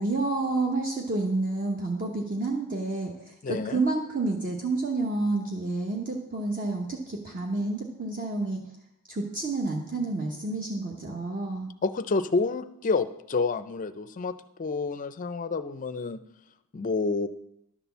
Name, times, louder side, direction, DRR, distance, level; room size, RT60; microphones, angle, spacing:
voice 1, 0.0-8.6 9.1-11.7, right 3 dB, 35° right, 0 dB, 1.0 m, -29 dB
voice 2, 3.4-3.8 11.8-14.3 14.6-16.2 16.7-17.3, left 4 dB, 35° left, 12 dB, 0.4 m, -28 dB
11.0 x 4.2 x 6.9 m, 0.79 s
head